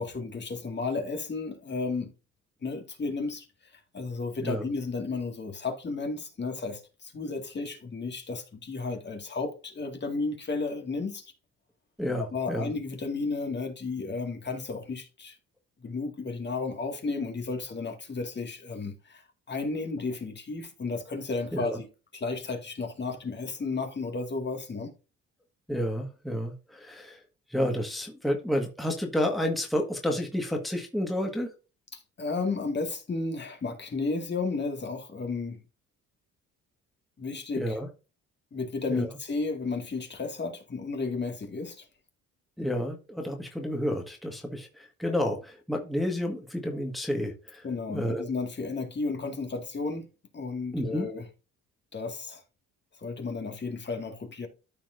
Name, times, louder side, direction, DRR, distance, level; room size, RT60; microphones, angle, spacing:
voice 1, 0.0-2.1 2.6-3.5 3.7-11.3 12.2-15.4 15.8-21.9 22.1-24.9 31.9-35.6 37.2-37.8 38.5-41.9 47.6-50.1 50.3-51.3 51.9-52.4 53.0-54.5, left 3 dB, 35° left, 2.0 m, -33 dB
voice 2, 12.0-12.7 21.5-21.8 25.7-27.2 27.5-31.5 37.5-37.9 38.9-39.1 42.6-48.2 50.7-51.0, equal, ahead, 1.7 m, -30 dB
13.5 x 4.5 x 2.6 m
cardioid pair, 90°, 30 cm